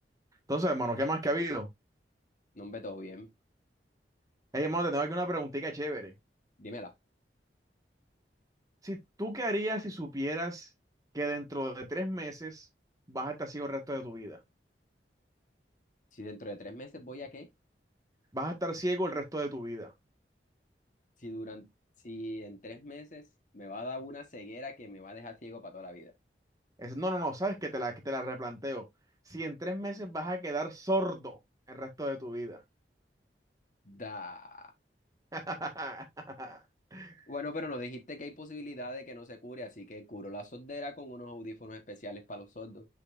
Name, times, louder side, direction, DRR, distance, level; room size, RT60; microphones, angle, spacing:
voice 1, 0.5-1.7 4.5-6.1 8.8-10.7 11.1-12.6 13.1-14.4 18.3-19.9 26.8-28.8 29.3-31.4 31.7-32.6 35.3-36.0 36.4-36.6 36.9-37.1, right 1 dB, 20° right, 1.7 m, -33 dB
voice 2, 2.5-3.3 6.6-6.9 16.1-17.5 21.2-21.7 22.0-23.3 23.5-26.1 33.8-34.7 37.3-42.9, left 1 dB, 45° left, 1.3 m, -42 dB
6.6 x 5.6 x 2.6 m
head